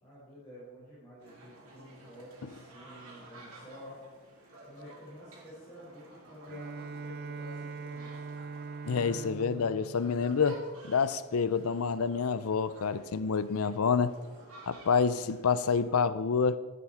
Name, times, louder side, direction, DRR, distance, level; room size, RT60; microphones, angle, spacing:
voice 1, 0.0-4.0 4.7-8.3, equal, 15° left, 4.1 m, -50 dB
sound 1, 1.2-16.0, right 1 dB, 80° right, 4.2 m, -53 dB
Bowed string instrument, 6.5-11.2, right 4 dB, 45° right, 0.4 m, -42 dB
voice 2, 8.9-14.1 14.7-16.6, left 5 dB, 90° left, 0.6 m, -28 dB
14.0 x 9.5 x 4.3 m
head